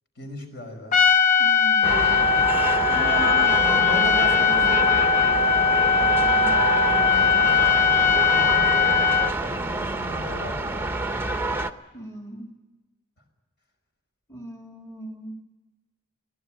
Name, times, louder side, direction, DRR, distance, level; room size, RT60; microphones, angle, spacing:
voice 1, 0.2-0.9 3.0-5.1 7.7-11.2, left 1 dB, 55° left, 5 dB, 5.3 m, -37 dB
Trumpet, 0.9-9.3, left 5 dB, 40° left, 0.8 m, -19 dB
voice 2, 1.4-2.3 2.9-4.2 5.8-7.6 11.9-12.6 14.3-15.3, right 1 dB, 15° left, 2 dB, 1.8 m, -39 dB
sound 1, 1.8-11.7, right 2 dB, 10° right, 0.8 m, -28 dB
23.5 x 18.0 x 8.9 m, 1.2 s
head